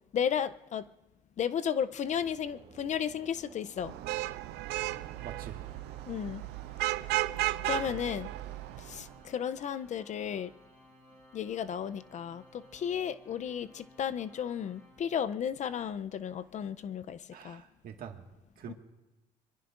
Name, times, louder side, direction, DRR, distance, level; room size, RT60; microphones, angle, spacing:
voice 1, 0.1-0.8 1.4-3.9 6.1-6.4 7.6-8.3 8.8-10.5 11.3-17.6 18.7-18.8, left 8 dB, 45° left, 13 dB, 0.5 m, -34 dB
sound 1, 2.1-8.6, right 5 dB, 40° right, 2.9 m, -58 dB
Vehicle horn car horn honking / Traffic noise roadway noise, 3.8-9.1, right 17 dB, 85° right, 0.4 m, -34 dB
Organ, 4.8-15.6, equal, 5° left, 3.5 m, -59 dB
voice 2, 5.2-5.6 7.9-8.0 17.3-18.2 18.6-18.7, right 8 dB, 60° right, 4 dB, 1.7 m, -45 dB
26.0 x 22.5 x 2.5 m, 1.1 s
cardioid pair, 110°, 17 cm